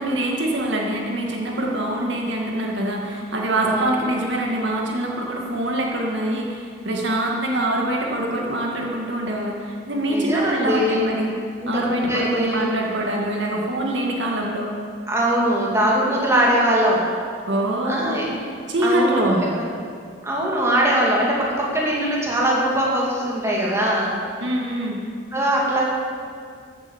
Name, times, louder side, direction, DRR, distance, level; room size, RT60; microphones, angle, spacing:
voice 1, 0.0-11.3 11.7-14.7 17.5-18.3 18.7-19.5 24.4-25.0, right 1 dB, 65° right, -1 dB, 1.9 m, -24 dB
voice 2, 3.6-4.0 10.1-12.6 15.1-17.0 17.8-18.3 18.8-19.7 20.2-24.2 25.3-25.8, right 1 dB, 15° right, -4 dB, 2.4 m, -21 dB
14.0 x 8.9 x 7.3 m, 2.2 s
head